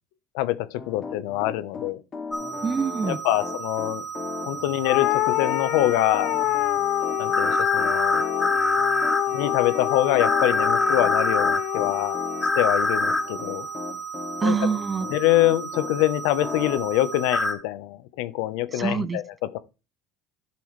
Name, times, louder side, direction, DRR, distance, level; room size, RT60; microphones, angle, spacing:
voice 1, 0.3-2.0 3.1-4.1 4.5-6.4 7.2-8.2 9.3-12.2 12.6-13.7 14.4-14.7 15.1-19.6, left 15 dB, 75° left, 1.1 m, -25 dB
Piano, 0.7-15.9 16.4-16.8, left 5 dB, 25° left, 2.6 m, -37 dB
sound 1, 2.3-17.5, left 1 dB, 5° left, 2.1 m, -28 dB
voice 2, 2.6-3.2 14.4-15.1 18.8-19.2, right 5 dB, 20° right, 0.4 m, -25 dB
sound 2, 4.8-13.4, left 15 dB, 55° left, 0.4 m, -27 dB
11.5 x 7.6 x 3.4 m
cardioid pair, 140°, 0 cm